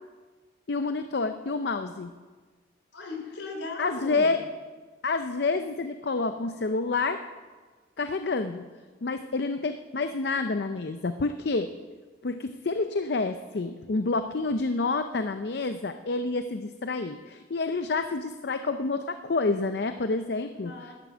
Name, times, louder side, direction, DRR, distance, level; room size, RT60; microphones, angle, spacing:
voice 1, 0.7-2.1 3.8-4.4 5.0-7.2 8.0-8.7 9.0-11.7 12.2-20.7, left 3 dB, 60° left, 9 dB, 0.5 m, -28 dB
voice 2, 2.9-4.4 20.5-20.9, left 3 dB, 80° left, 2 dB, 3.3 m, -37 dB
12.0 x 9.8 x 7.9 m, 1.4 s
head